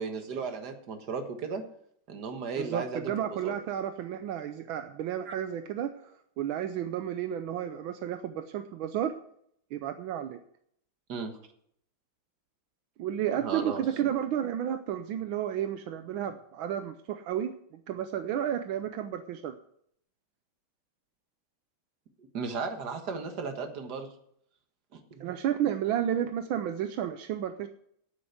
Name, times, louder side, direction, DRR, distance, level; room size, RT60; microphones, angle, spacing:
voice 1, 0.0-1.6 2.1-3.5 5.3-5.4 11.1-11.4 13.4-13.8 22.3-24.1 24.9-25.3, right 5 dB, 55° right, 6 dB, 2.0 m, -35 dB
voice 2, 2.6-9.1 9.7-10.4 13.0-17.5 17.9-19.5 25.2-27.7, right 10 dB, 80° right, 9 dB, 1.5 m, -32 dB
8.8 x 8.7 x 8.0 m, 0.68 s
omnidirectional pair, 2.2 m